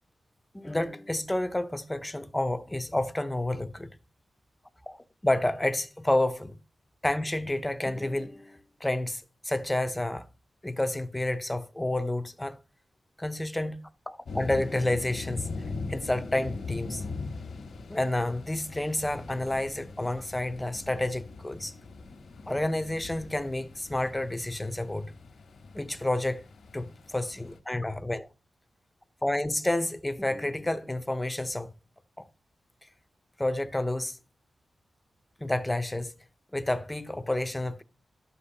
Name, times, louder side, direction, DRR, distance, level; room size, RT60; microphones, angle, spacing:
voice 1, 0.5-3.9 4.9-6.6 7.0-10.3 10.6-12.6 13.2-15.5 15.9-17.0 17.9-21.7 22.5-25.1 25.7-26.4 26.7-28.3 29.2-31.7 32.2-32.3 33.4-34.2 35.4-36.1 36.5-37.8, left 1 dB, 10° left, 0.6 m, -30 dB
sound 1, 14.3-27.6, left 3 dB, 75° left, 1.2 m, -41 dB
12.0 x 6.7 x 2.8 m
wide cardioid pair, 140°, 0 cm